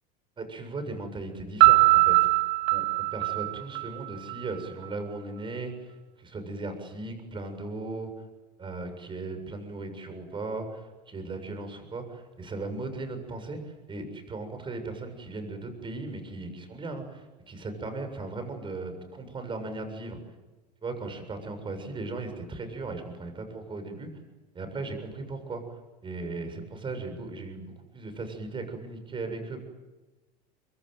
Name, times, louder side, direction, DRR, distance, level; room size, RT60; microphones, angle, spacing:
voice 1, 0.4-2.3 2.7-8.1 8.6-20.2 20.8-24.1 24.5-29.6, right 3 dB, 25° right, 7 dB, 7.3 m, -37 dB
Piano, 1.6-4.4, right 24 dB, 60° right, 1.0 m, -21 dB
25.0 x 23.0 x 9.3 m, 1.2 s
supercardioid pair, 115°, 20 cm